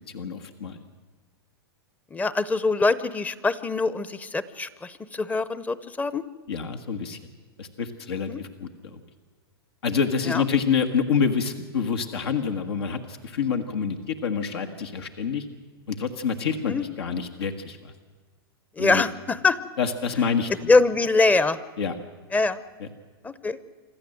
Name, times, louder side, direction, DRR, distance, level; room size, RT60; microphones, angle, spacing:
voice 1, 0.1-0.8 6.5-7.2 7.6-9.0 9.8-15.4 15.9-17.9 18.8-19.0 19.8-20.7 21.8-21.9 22.8-22.9, left 6 dB, 80° left, 5 dB, 1.6 m, -27 dB
voice 2, 2.1-6.2 8.3-8.4 10.3-10.5 16.7-16.8 18.8-19.6 20.7-21.6 22.3-22.6 23.2-23.6, left 3 dB, 10° left, 17 dB, 0.7 m, -23 dB
26.0 x 13.5 x 7.8 m, 1.4 s
hypercardioid pair, 120°, 13 cm